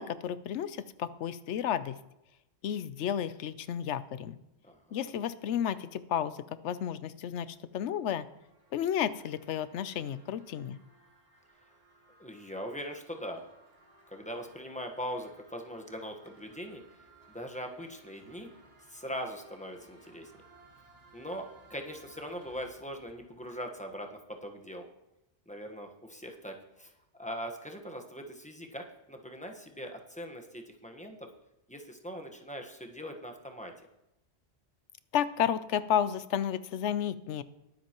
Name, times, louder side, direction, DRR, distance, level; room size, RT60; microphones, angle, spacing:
voice 1, 0.0-1.9 2.6-4.4 4.9-8.3 8.7-10.8 35.1-37.4, left 9 dB, 80° left, 14 dB, 0.9 m, -32 dB
voice 2, 4.6-5.0 12.2-13.4 14.1-16.8 17.3-18.5 18.9-20.3 21.1-24.9 25.5-26.9 27.2-28.8 29.1-31.3 31.7-33.7, equal, 5° left, 3 dB, 1.1 m, -41 dB
sound 1, 7.5-24.4, right 3 dB, 60° right, 2.1 m, -61 dB
21.5 x 7.7 x 3.0 m, 0.91 s
omnidirectional pair, 1.2 m